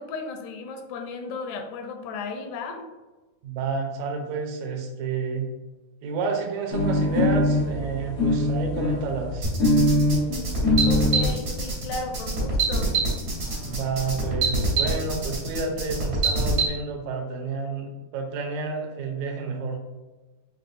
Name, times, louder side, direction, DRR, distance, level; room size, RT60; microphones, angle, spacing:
voice 1, 0.0-2.9 10.9-12.9, left 4 dB, 85° left, 5 dB, 2.0 m, -35 dB
voice 2, 3.4-5.5 6.0-9.5 13.7-17.9 18.1-19.8, right 4 dB, 80° right, 3 dB, 1.9 m, -30 dB
sound 1, 6.7-11.3 12.1-12.2 12.5-12.6 12.8-12.9 13.1-13.8, left 1 dB, 70° left, 0.7 m, -23 dB
sound 2, 9.4-16.7, right 3 dB, 50° right, 1.1 m, -25 dB
5.4 x 2.8 x 2.6 m, 1.2 s
omnidirectional pair, 3.3 m